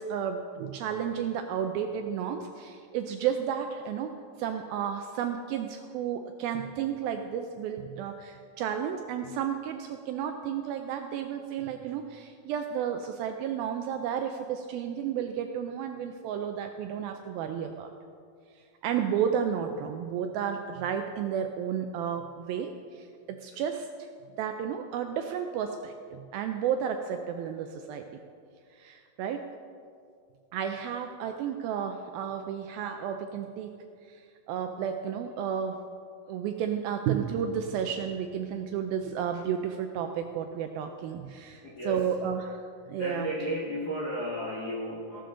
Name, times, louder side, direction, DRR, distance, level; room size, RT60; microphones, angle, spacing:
voice 1, 0.0-17.9 18.5-24.1 24.4-28.2 28.7-29.5 30.5-33.8 34.1-35.8 36.3-42.6 42.9-43.3, right 8 dB, 85° right, 6 dB, 2.1 m, -32 dB
voice 2, 41.6-42.3 43.0-45.2, equal, 80° left, -4 dB, 0.8 m, -34 dB
16.0 x 12.0 x 3.8 m, 2.3 s
omnidirectional pair, 4.8 m